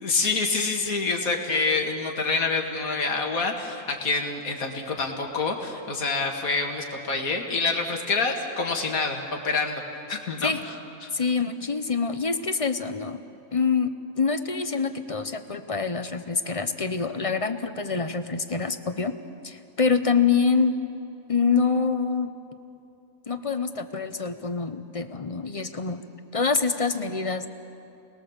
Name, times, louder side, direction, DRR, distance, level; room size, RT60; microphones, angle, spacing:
voice 1, 0.0-9.8 10.1-10.7 11.0-11.1, left 4 dB, 80° left, 2 dB, 2.4 m, -27 dB
voice 2, 11.1-13.2 13.5-13.9 14.2-19.2 19.4-20.8 21.3-22.3 23.3-26.0 26.3-27.5, left 5 dB, 30° left, 9 dB, 0.8 m, -25 dB
30.0 x 20.0 x 7.2 m, 2.8 s
omnidirectional pair, 1.5 m